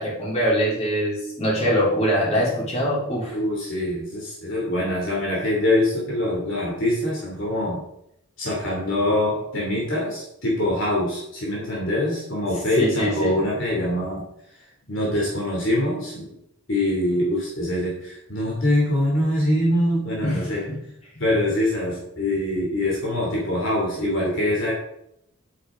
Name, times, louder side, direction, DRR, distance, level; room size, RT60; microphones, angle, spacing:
voice 1, 0.0-3.4 12.8-13.4 20.2-20.4 20.7-20.8, equal, 30° left, -5 dB, 4.1 m, -23 dB
voice 2, 3.3-7.8 8.4-14.2 14.9-16.3 16.7-20.6 21.2-24.7, left 1 dB, 55° left, -3 dB, 3.0 m, -24 dB
9.9 x 8.9 x 3.8 m, 0.76 s
head